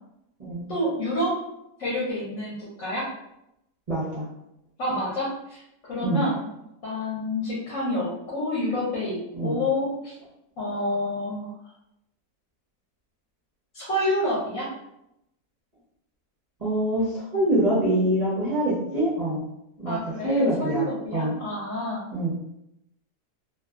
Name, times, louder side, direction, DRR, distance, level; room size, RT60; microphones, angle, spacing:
voice 1, 0.7-1.4 1.8-3.1 4.8-5.6 5.9-6.5 6.8-10.2 10.6-11.5 13.7-14.7 19.9-22.0, left 1 dB, 60° left, -6 dB, 1.0 m, -28 dB
voice 2, 3.9-4.2 6.0-6.2 9.3-9.6 16.6-19.4 19.8-20.9 21.1-21.3 22.1-22.3, right 1 dB, 45° right, -9 dB, 0.5 m, -25 dB
2.6 x 2.3 x 2.3 m, 0.83 s
omnidirectional pair, 1.7 m